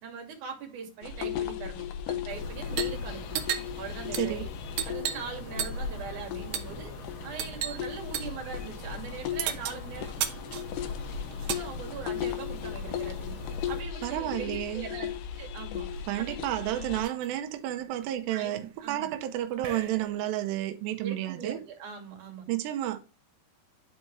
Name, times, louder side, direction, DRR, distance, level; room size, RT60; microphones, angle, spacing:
voice 1, 0.0-3.4 3.8-4.5 4.9-6.9 7.2-10.1 11.5-13.4 13.7-15.9 16.2-16.4 18.3-19.1 21.0-22.5, right 6 dB, 50° right, 3.5 m, -41 dB
sound 1, 1.0-17.0, left 8 dB, 75° left, 2.0 m, -36 dB
sound 2, 2.3-13.8, left 3 dB, 45° left, 1.7 m, -44 dB
sound 3, 2.7-3.0 3.3-5.3 5.6-6.0 6.5-6.8 7.4-7.8 8.1-8.4 9.4-11.7 12.7-13.8 15.0-15.1 15.4-16.0 16.5-16.6 16.8-17.3 17.8-20.3, right 10 dB, 70° right, 2.5 m, -36 dB
voice 2, 4.1-4.5 14.0-14.8 16.1-21.6 22.5-23.0, right 13 dB, 90° right, 3.0 m, -31 dB
12.0 x 4.4 x 3.3 m
omnidirectional pair, 4.8 m